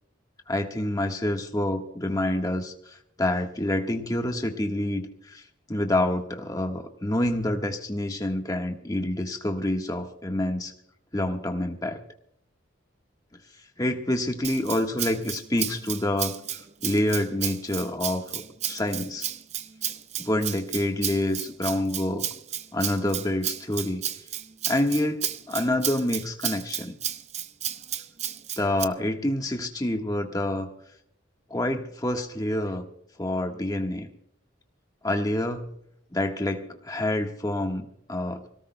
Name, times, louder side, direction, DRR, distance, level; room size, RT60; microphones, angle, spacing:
voice 1, 0.5-5.4 5.7-10.7 11.1-12.0 13.8-16.4 16.8-19.3 20.2-22.3 22.7-24.0 24.7-26.9 28.6-30.7 31.5-32.9 33.2-34.1 35.0-35.7 36.1-38.5, left 1 dB, 20° left, 4 dB, 1.4 m, -27 dB
Rattle (instrument), 14.4-28.8, right 11 dB, 35° right, 0.5 m, -33 dB
25.5 x 18.0 x 2.2 m, 0.71 s
head